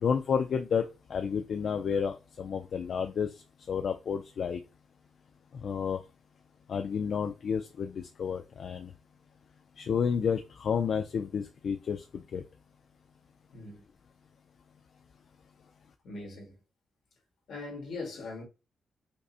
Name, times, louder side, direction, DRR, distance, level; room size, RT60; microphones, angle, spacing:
voice 1, 0.0-3.3 3.7-4.6 5.6-6.0 6.7-8.9 9.8-12.0 12.3-12.4, left 6 dB, 50° left, 0.3 m, -30 dB
voice 2, 13.5-13.8 16.0-16.5 17.5-18.4, left 3 dB, 70° left, 1.7 m, -40 dB
5.1 x 2.1 x 2.6 m
wide cardioid pair, 175°, 0 cm